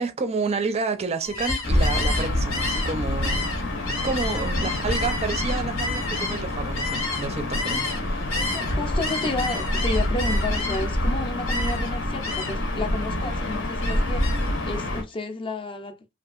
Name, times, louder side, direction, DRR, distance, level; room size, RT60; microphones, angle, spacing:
voice 1, 0.0-3.5 4.0-8.5, right 4 dB, 30° right, 0.4 m, -30 dB
Gull seagull, 1.2-8.0 8.3-11.0 11.5-11.9 12.2-12.7 13.1-14.5, left 2 dB, 90° left, 1.0 m, -30 dB
Gull seagull / Ocean, 1.6-15.0, left 1 dB, 60° left, 0.7 m, -27 dB
voice 2, 4.2-4.7 8.4-16.0, left 2 dB, 25° left, 0.5 m, -32 dB
2.7 x 2.4 x 2.4 m
head